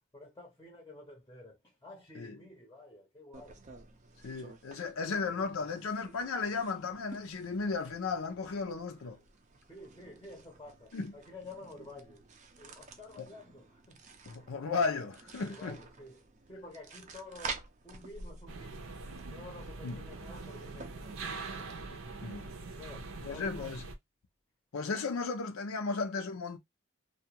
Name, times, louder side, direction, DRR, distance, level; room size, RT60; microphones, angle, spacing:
voice 1, 0.1-3.6 9.7-12.2 12.6-14.5 15.4-19.0 19.3-21.7 22.8-23.8, left 2 dB, 15° left, 0.6 m, -51 dB
sound 1, 3.3-22.8, right 4 dB, 35° right, 0.4 m, -50 dB
voice 2, 4.2-9.2 10.9-11.1 14.3-15.8 19.8-20.0 22.2-22.5 23.2-23.8 24.7-26.6, left 4 dB, 85° left, 0.5 m, -35 dB
sound 2, 18.5-23.9, right 3 dB, 80° right, 0.6 m, -43 dB
2.3 x 2.2 x 2.8 m
head